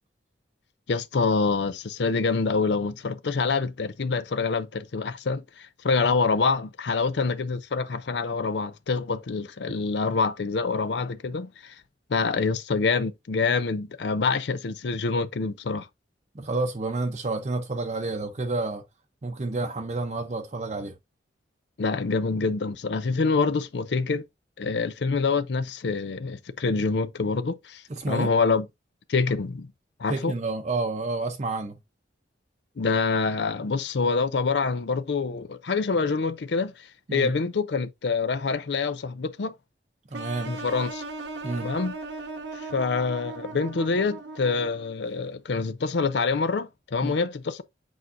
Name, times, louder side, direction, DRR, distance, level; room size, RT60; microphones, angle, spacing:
voice 1, 0.9-11.8 12.1-15.9 21.8-24.2 24.6-28.7 29.1-29.7 30.0-30.3 32.8-39.5 40.5-41.0 41.6-42.0 42.5-47.6, left 4 dB, 70° left, 0.5 m, -26 dB
voice 2, 16.3-18.8 19.2-20.9 27.9-28.3 30.1-31.8 37.1-37.3 40.1-40.5 41.4-41.7 47.0-47.1, right 3 dB, 40° right, 0.6 m, -29 dB
sound 1, 40.1-45.0, right 3 dB, 85° right, 1.1 m, -38 dB
8.3 x 4.6 x 2.5 m
head